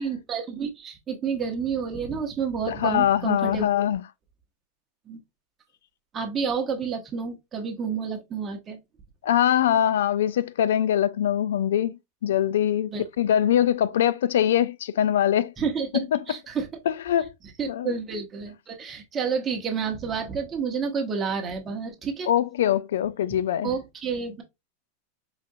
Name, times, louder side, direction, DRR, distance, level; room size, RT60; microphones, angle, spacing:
voice 1, 0.0-3.8 5.1-5.2 6.1-8.8 12.9-13.1 15.6-16.7 17.6-22.3 23.6-24.4, right 6 dB, 20° right, 1.0 m, -30 dB
voice 2, 2.7-4.0 9.2-15.5 16.1-16.2 16.9-17.3 17.7-17.9 22.3-23.7, left 10 dB, 90° left, 0.3 m, -23 dB
4.8 x 2.5 x 2.6 m
supercardioid pair, 150°, 0 cm